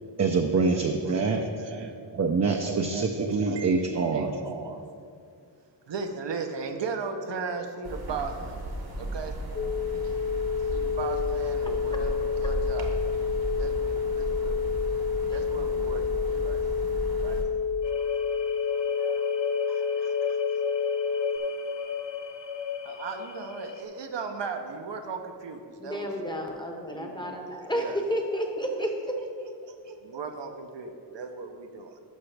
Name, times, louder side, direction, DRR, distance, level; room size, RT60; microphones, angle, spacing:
voice 1, 0.2-1.4 2.1-4.3, right 4 dB, 40° right, 3 dB, 0.5 m, -25 dB
voice 2, 0.7-2.0 2.7-4.9 5.9-8.6 9.0-9.3 10.7-13.0 13.6-14.6 15.3-16.9 17.2-17.4 19.0-20.4 22.8-26.4 26.9-28.0 28.3-28.4 28.8-28.9 29.4-32.0, right 4 dB, 75° right, 5 dB, 0.8 m, -37 dB
sound 1, 7.8-17.4, right 1 dB, 60° right, 1.2 m, -35 dB
sound 2, 9.5-21.4, left 6 dB, 35° left, 0.4 m, -29 dB
sound 3, 17.8-23.8, left 6 dB, 80° left, 0.8 m, -34 dB
voice 3, 25.8-29.1, equal, 10° left, 2 dB, 0.8 m, -31 dB
12.0 x 6.0 x 3.3 m, 2.3 s
wide cardioid pair, 140°, 43 cm